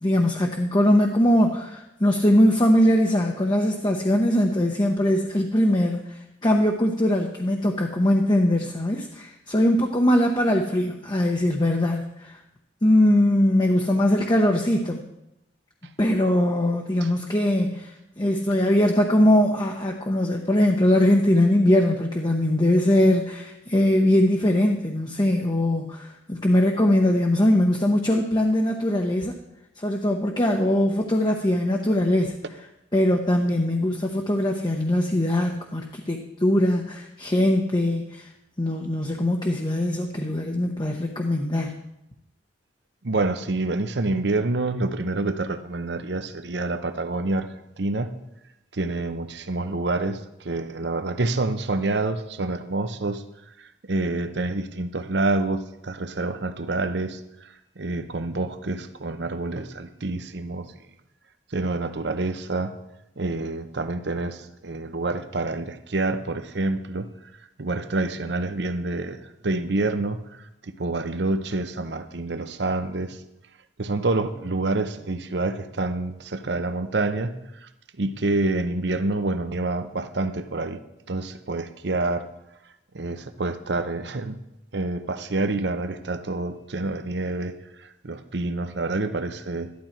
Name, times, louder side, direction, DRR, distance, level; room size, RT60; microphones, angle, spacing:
voice 1, 0.0-12.4 12.8-15.0 16.0-29.3 29.8-32.3 32.9-38.3 38.6-41.8, left 1 dB, 25° left, 1 dB, 0.9 m, -21 dB
voice 2, 43.0-48.1 48.7-53.2 53.6-60.7 61.5-62.8 63.2-67.1 67.6-70.2 70.6-73.2 73.8-77.7 78.0-80.8 81.1-82.3 82.9-84.4 84.7-87.5 88.0-89.7, right 2 dB, 65° right, 10 dB, 0.8 m, -27 dB
13.0 x 11.5 x 4.5 m, 0.88 s
head